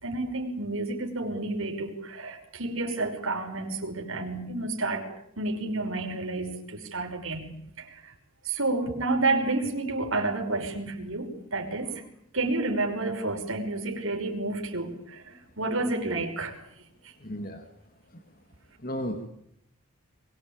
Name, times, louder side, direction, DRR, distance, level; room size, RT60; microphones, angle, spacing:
voice 1, 0.0-5.1 5.4-8.1 8.4-12.0 12.3-16.6 17.0-17.1, right 2 dB, 75° right, 1 dB, 5.6 m, -30 dB
voice 2, 17.2-17.6 18.1-18.2 18.8-19.3, equal, 40° left, 6 dB, 2.3 m, -34 dB
24.0 x 23.0 x 8.8 m, 0.74 s
head